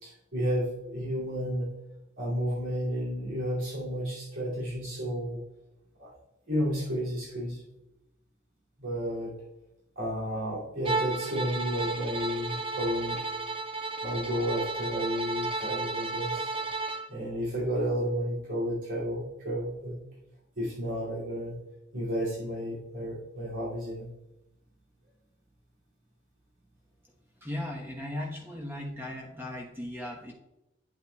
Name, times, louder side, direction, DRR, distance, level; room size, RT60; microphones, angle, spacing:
voice 1, 0.0-1.7 2.2-5.4 6.0-6.1 6.5-7.6 8.8-9.4 10.0-13.2 14.0-16.6 17.1-20.0 20.6-21.6 21.9-24.1, equal, 80° right, -8 dB, 2.6 m, -32 dB
Bowed string instrument, 10.8-17.1, right 3 dB, 25° right, 0.5 m, -33 dB
voice 2, 27.4-30.3, left 1 dB, 10° right, -2 dB, 1.1 m, -37 dB
9.7 x 7.9 x 2.3 m, 0.90 s
head